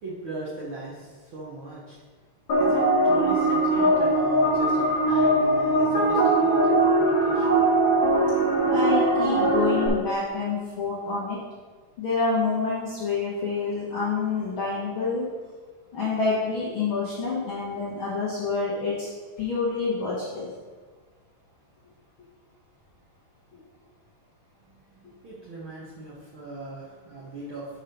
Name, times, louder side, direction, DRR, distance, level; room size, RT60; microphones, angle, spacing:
voice 1, 0.0-2.0 2.6-7.6 25.2-27.7, right 2 dB, 75° right, -6 dB, 1.1 m, -38 dB
sound 1, 2.5-9.9, right 1 dB, 40° left, 1.9 m, -21 dB
voice 2, 8.7-11.4 12.0-15.2 15.9-19.1 19.4-20.5, left 4 dB, 65° left, -7 dB, 1.3 m, -27 dB
7.2 x 4.7 x 5.1 m, 1.4 s
omnidirectional pair, 4.0 m